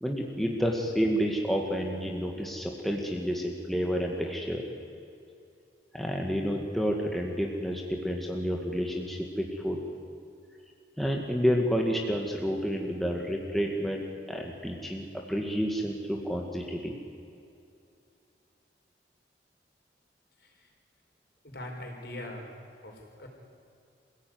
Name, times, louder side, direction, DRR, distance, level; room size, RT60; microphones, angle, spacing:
voice 1, 0.0-4.6 5.9-9.8 11.0-16.9, equal, ahead, 0 dB, 1.9 m, -30 dB
voice 2, 21.4-22.5 22.8-23.3, left 1 dB, 60° left, 1 dB, 4.7 m, -41 dB
26.5 x 16.5 x 9.6 m, 2.6 s
head